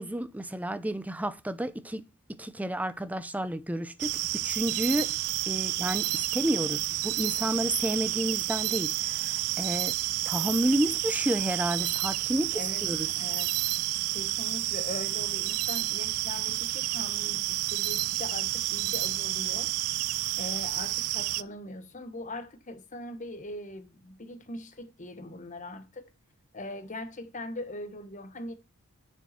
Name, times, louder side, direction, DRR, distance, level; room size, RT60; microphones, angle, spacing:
voice 1, 0.0-2.0 2.3-5.1 5.5-10.0 10.2-13.1, right 1 dB, 5° right, 0.5 m, -31 dB
sound 1, 4.0-21.4, right 16 dB, 90° right, 0.4 m, -30 dB
voice 2, 12.5-12.9 13.2-13.7 14.1-19.7 20.4-26.1 26.5-28.5, left 1 dB, 35° left, 1.1 m, -41 dB
7.1 x 6.8 x 4.2 m
head